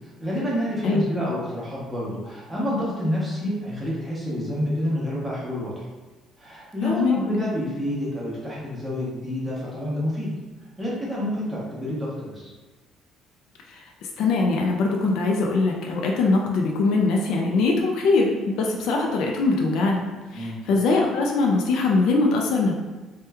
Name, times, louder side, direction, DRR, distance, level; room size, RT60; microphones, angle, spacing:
voice 1, 0.2-5.9 6.4-10.3 10.8-12.5 20.3-20.6, equal, 10° right, -6 dB, 0.7 m, -28 dB
voice 2, 6.8-7.2 13.7-13.8 14.2-22.7, left 3 dB, 70° left, 0 dB, 0.4 m, -22 dB
2.9 x 2.2 x 3.3 m, 1.2 s
cardioid pair, 170°, 0 cm